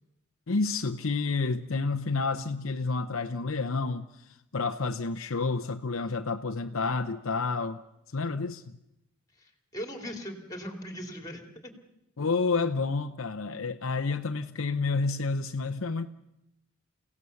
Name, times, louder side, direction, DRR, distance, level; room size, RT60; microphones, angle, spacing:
voice 1, 0.5-7.8 8.1-8.8 12.2-16.1, left 4 dB, 60° left, 7 dB, 0.7 m, -30 dB
voice 2, 9.4-11.8, equal, 15° left, 4 dB, 2.6 m, -40 dB
29.5 x 17.0 x 7.0 m, 0.88 s
head